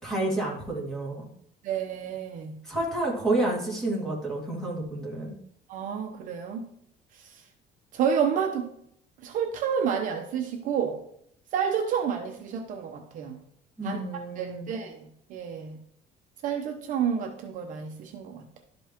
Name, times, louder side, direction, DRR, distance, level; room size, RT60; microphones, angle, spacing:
voice 1, 0.0-1.2 2.6-5.3 13.8-14.7, right 2 dB, 5° left, -4 dB, 2.1 m, -29 dB
voice 2, 1.6-2.5 5.7-6.6 7.1-7.4 7.9-8.7 9.2-11.0 11.5-13.4 13.8-15.8 16.4-18.6, right 7 dB, 50° right, 3 dB, 0.8 m, -30 dB
12.0 x 5.3 x 3.0 m, 0.70 s
cardioid pair, 175°, 18 cm